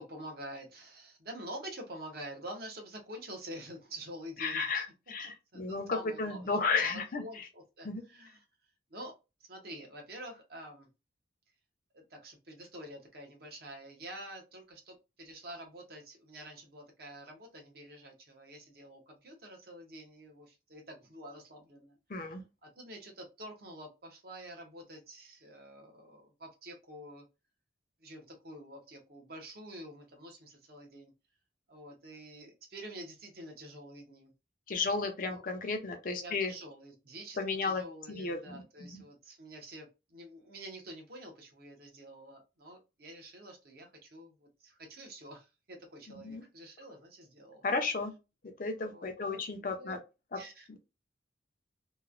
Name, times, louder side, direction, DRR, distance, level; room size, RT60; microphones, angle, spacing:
voice 1, 0.0-4.7 5.5-8.4 8.9-9.1 9.4-10.9 11.9-21.9 22.6-27.3 28.0-31.1 31.7-34.3 35.3-35.4 36.2-47.6 48.9-50.0 50.3-50.7, right 1 dB, 55° right, 0.8 m, -48 dB
voice 2, 4.4-7.5 7.8-8.0 22.1-22.4 34.7-36.5 37.4-37.8 38.2-39.0 46.1-46.4 47.6-48.1 48.4-50.0 50.3-50.4 50.7-50.8, left 4 dB, 45° left, 0.5 m, -34 dB
3.0 x 2.1 x 2.4 m
head